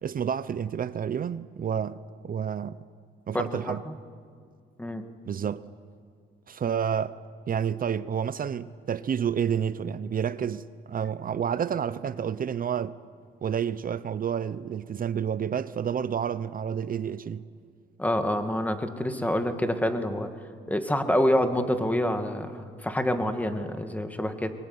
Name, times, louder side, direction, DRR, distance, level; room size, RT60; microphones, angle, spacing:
voice 1, 0.0-2.8 3.3-3.8 5.2-5.6 6.5-7.2 7.5-13.0 13.4-17.5, right 8 dB, 45° right, 0.7 m, -29 dB
voice 2, 3.3-3.9 4.8-5.1 18.0-20.3 20.7-24.5, left 1 dB, 5° left, 2.2 m, -27 dB
23.0 x 21.0 x 9.7 m
cardioid pair, 90°, 20 cm